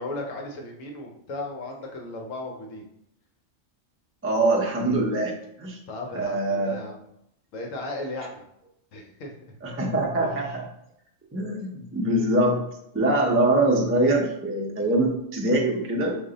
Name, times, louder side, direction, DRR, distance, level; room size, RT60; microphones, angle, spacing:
voice 1, 0.0-2.8 5.9-7.0 7.5-8.4 8.9-9.6 10.4-10.5, left 2 dB, 75° left, 1 dB, 1.1 m, -36 dB
voice 2, 4.2-5.8 6.1-6.8 9.6-10.7 11.3-12.6 12.9-16.2, right 2 dB, 20° right, -1 dB, 0.4 m, -23 dB
5.3 x 2.1 x 3.8 m, 0.78 s
omnidirectional pair, 1.4 m